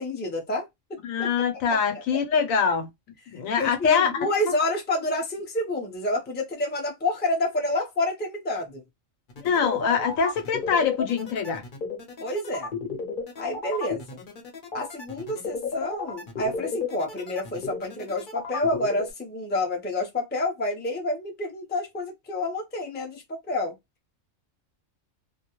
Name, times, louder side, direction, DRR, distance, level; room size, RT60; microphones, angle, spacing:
voice 1, 0.0-1.3 1.7-1.8 3.5-8.8 12.2-12.7 13.4-14.2 14.7-23.7, left 1 dB, 15° left, 0.4 m, -29 dB
voice 2, 1.0-2.9 3.3-4.1 9.4-11.6, left 6 dB, 85° left, 1.1 m, -24 dB
sound 1, 9.3-19.1, left 5 dB, 45° left, 0.8 m, -32 dB
2.3 x 2.1 x 2.9 m
omnidirectional pair, 1.4 m